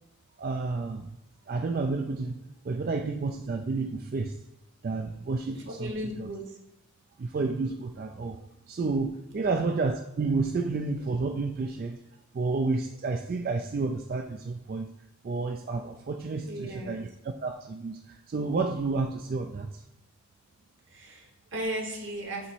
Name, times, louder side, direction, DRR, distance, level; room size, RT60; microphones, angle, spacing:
voice 1, 0.4-1.1 1.5-2.4 2.6-4.4 4.8-5.9 6.2-6.3 7.2-12.0 12.3-14.9 15.2-19.8, right 3 dB, 40° right, 5 dB, 0.3 m, -30 dB
voice 2, 5.7-6.6 9.3-9.6 16.4-17.0 20.9-22.5, right 1 dB, 55° right, 1 dB, 1.2 m, -36 dB
6.9 x 3.0 x 4.5 m, 0.91 s
head